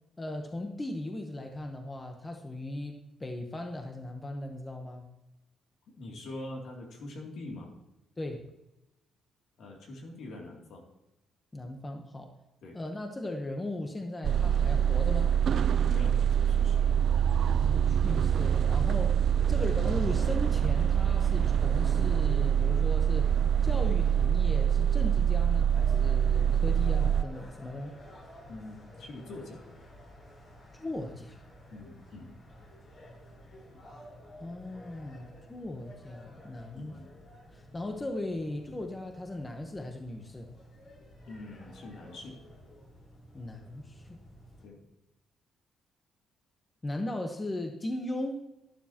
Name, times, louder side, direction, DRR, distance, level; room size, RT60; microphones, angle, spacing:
voice 1, 0.2-5.1 8.2-8.5 11.5-12.3 12.7-15.3 17.5-19.2 19.5-28.0 30.7-31.4 34.4-36.9 37.5-40.5 43.3-44.2 46.8-48.5, left 1 dB, 20° left, 4 dB, 1.0 m, -37 dB
voice 2, 6.0-7.7 9.6-10.8 12.6-12.8 15.9-17.0 19.4-19.6 28.5-29.6 31.7-32.4 36.8-37.1 41.3-42.4 44.6-44.8, left 2 dB, 70° left, 0 dB, 2.7 m, -44 dB
sound 1, 14.2-27.2, right 9 dB, 55° right, 0.3 m, -25 dB
sound 2, 25.7-44.6, equal, 50° left, 4.5 m, -52 dB
12.0 x 11.5 x 2.9 m, 0.94 s
cardioid pair, 120°, 0 cm